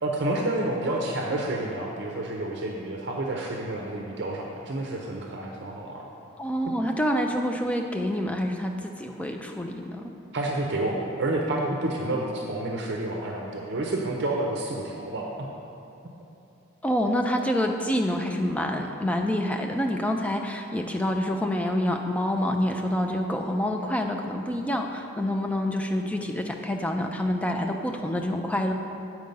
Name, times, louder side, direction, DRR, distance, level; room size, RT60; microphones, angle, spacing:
voice 1, 0.0-6.1 6.6-6.7 10.3-15.3, right 2 dB, 55° right, 0 dB, 0.6 m, -29 dB
voice 2, 6.4-10.1 16.8-28.7, equal, 5° left, 3 dB, 0.4 m, -27 dB
7.7 x 4.7 x 5.3 m, 2.8 s
head